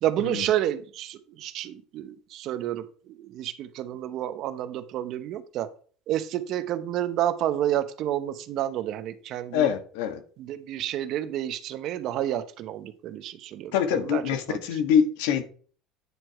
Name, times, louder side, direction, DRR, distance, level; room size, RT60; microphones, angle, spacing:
voice 1, 0.0-5.7 6.1-9.7 10.4-14.8, right 12 dB, 55° right, 0.8 m, -30 dB
voice 2, 9.5-10.2 13.7-15.4, left 8 dB, 80° left, 1.3 m, -24 dB
9.7 x 4.8 x 4.6 m
cardioid pair, 125°, 0 cm